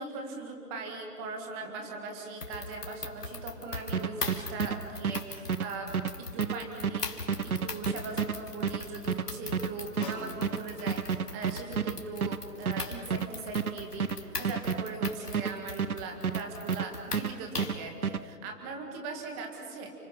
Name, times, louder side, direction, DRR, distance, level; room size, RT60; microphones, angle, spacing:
voice 1, 0.0-19.9, right 3 dB, 10° right, 3 dB, 1.8 m, -40 dB
sound 1, 2.4-17.9, left 3 dB, 75° left, 3.2 m, -41 dB
sound 2, 3.9-16.9 17.1-18.2, right 6 dB, 65° right, 0.9 m, -31 dB
Snare drum, 10.0-10.9 15.4-15.5, left 2 dB, 30° left, 5.2 m, -43 dB
30.0 x 26.5 x 5.7 m, 2.3 s
figure-of-eight pair, 155°, 47 cm